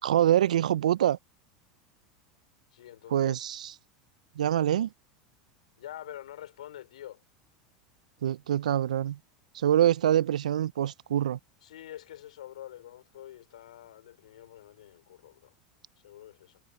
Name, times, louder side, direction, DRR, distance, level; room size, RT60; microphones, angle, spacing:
voice 1, 0.0-1.2 3.1-3.7 4.4-4.9 8.2-9.2 9.5-11.4, right 11 dB, 80° right, 0.4 m, -25 dB
voice 2, 2.7-3.4 5.8-7.2 11.6-15.5 16.0-16.6, left 12 dB, 80° left, 4.8 m, -46 dB
hypercardioid pair, 90°, 4 cm